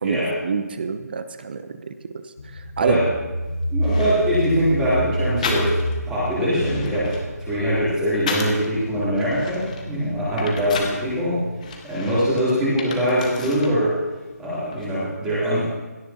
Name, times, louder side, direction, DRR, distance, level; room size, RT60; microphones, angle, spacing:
voice 1, 0.0-1.9 2.5-3.0, right 5 dB, 35° right, 10 dB, 0.8 m, -26 dB
sound 1, 2.4-11.5, equal, 65° left, 1.5 m, -29 dB
sound 2, 3.4-3.5 3.8-4.6 5.4-6.0 6.4-8.7 9.2-11.0 11.6-13.8 14.1-14.9, left 4 dB, 25° left, 1.3 m, -33 dB
voice 2, 3.7-5.7 6.1-11.4 11.8-13.9 14.4-15.6, equal, 5° right, -11 dB, 3.4 m, -22 dB
17.0 x 14.0 x 3.0 m, 1.2 s
hypercardioid pair, 170°, 9 cm